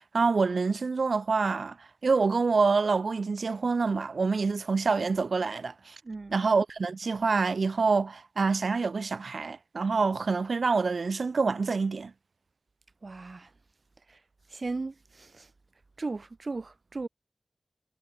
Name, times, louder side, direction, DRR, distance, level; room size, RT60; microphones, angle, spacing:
voice 1, 0.0-6.0 6.3-12.1, right 4 dB, 80° right, 0.7 m, -26 dB
voice 2, 6.0-6.4 13.0-13.5 14.1-14.2 14.5-15.5 16.0-17.1, right 3 dB, 60° right, 2.8 m, -37 dB
wide cardioid pair, 60°, 0 cm